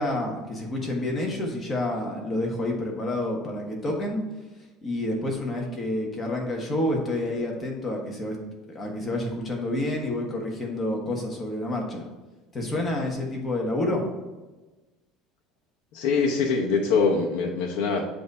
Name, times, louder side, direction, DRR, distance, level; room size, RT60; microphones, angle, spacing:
voice 1, 0.0-4.2 4.8-8.4 8.7-12.0 12.5-14.0, left 1 dB, 20° left, 0 dB, 1.2 m, -28 dB
voice 2, 15.9-18.0, left 4 dB, 70° left, -1 dB, 0.8 m, -23 dB
7.6 x 2.6 x 5.3 m, 1.2 s
cardioid pair, 155°, 0 cm